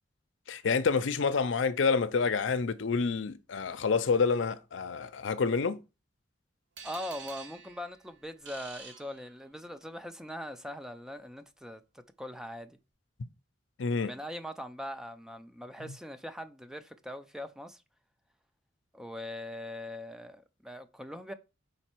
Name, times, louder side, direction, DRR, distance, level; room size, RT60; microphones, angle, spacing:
voice 1, 0.5-5.8 13.8-14.1, left 5 dB, 85° left, 0.5 m, -28 dB
voice 2, 6.8-11.8 12.2-12.8 14.0-17.8 18.9-21.3, left 1 dB, 5° right, 0.4 m, -41 dB
sound 1, 6.8-9.8, right 5 dB, 75° right, 1.4 m, -48 dB
5.3 x 4.0 x 4.4 m
head